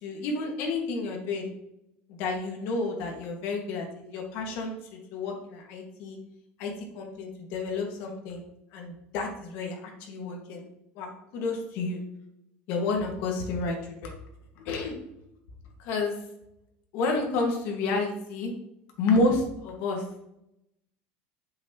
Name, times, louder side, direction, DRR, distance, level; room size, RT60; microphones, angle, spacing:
voice 1, 0.0-1.5 2.1-6.2 6.6-8.4 8.7-10.7 11.0-12.0 12.7-13.8 14.0-14.1 14.6-15.0 15.8-16.2 16.9-18.5 19.0-20.1, left 3 dB, 60° left, 1 dB, 1.7 m, -30 dB
7.4 x 6.2 x 2.9 m, 0.83 s
cardioid pair, 160°, 4 cm